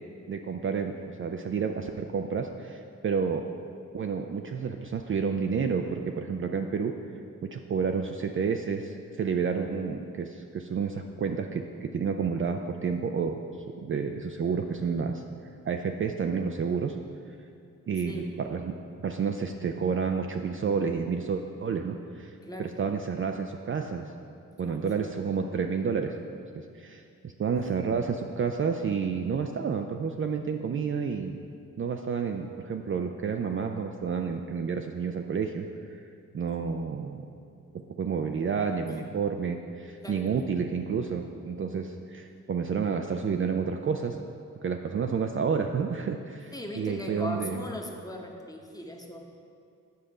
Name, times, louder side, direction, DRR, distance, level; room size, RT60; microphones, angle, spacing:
voice 1, 0.3-0.9 1.2-3.5 3.9-6.9 7.4-13.4 13.8-15.2 15.6-17.0 17.9-18.7 19.0-24.1 24.6-26.2 26.7-31.4 31.8-36.1 36.3-37.2 38.0-44.2 44.6-47.6, right 6 dB, 40° right, 4 dB, 0.4 m, -30 dB
voice 2, 18.0-18.3 22.4-22.7 24.6-25.1 38.9-39.0 40.0-40.5 46.5-49.3, left 1 dB, 10° left, 1 dB, 1.1 m, -39 dB
8.0 x 5.2 x 4.9 m, 2.4 s
cardioid pair, 60°, 34 cm